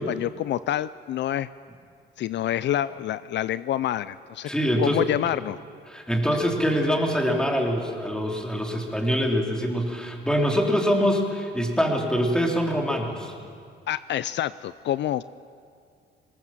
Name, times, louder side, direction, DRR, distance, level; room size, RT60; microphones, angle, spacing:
voice 1, 0.0-1.5 2.2-4.5 4.8-5.6 13.9-15.2, left 12 dB, 65° left, 16 dB, 0.4 m, -27 dB
voice 2, 4.5-5.0 5.9-13.3, equal, 5° left, 0 dB, 3.5 m, -24 dB
20.5 x 19.0 x 7.5 m, 2.3 s
cardioid pair, 90°, 20 cm